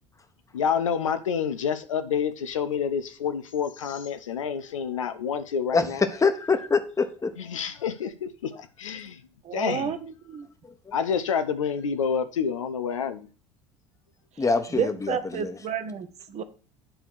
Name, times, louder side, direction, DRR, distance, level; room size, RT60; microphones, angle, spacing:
voice 1, 0.5-6.0 7.4-9.2 9.5-9.9 10.9-13.3, left 7 dB, 85° left, 9 dB, 0.7 m, -28 dB
voice 2, 6.2-7.3 10.9-11.0 14.4-15.5, left 4 dB, 20° left, 8 dB, 1.2 m, -24 dB
voice 3, 9.4-10.5 14.4-14.5 14.7-16.4, right 7 dB, 40° right, 9 dB, 1.1 m, -31 dB
8.9 x 3.5 x 6.3 m, 0.37 s
hypercardioid pair, 70°, 16 cm